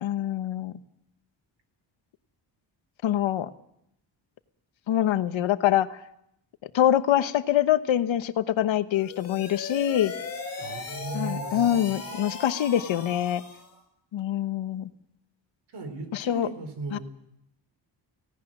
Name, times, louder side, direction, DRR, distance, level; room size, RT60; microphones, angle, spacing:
voice 1, 0.0-0.7 3.0-3.5 4.9-6.0 6.7-10.1 11.1-13.4 14.1-14.9 16.1-16.5 16.9-17.0, left 11 dB, 85° left, 12 dB, 1.1 m, -25 dB
sound 1, 8.9-13.7, left 4 dB, 35° left, 5.7 m, -37 dB
voice 2, 10.6-12.0 15.7-17.0, right 2 dB, 60° right, 8 dB, 4.0 m, -37 dB
17.5 x 17.0 x 8.9 m, 0.77 s
wide cardioid pair, 160°, 45 cm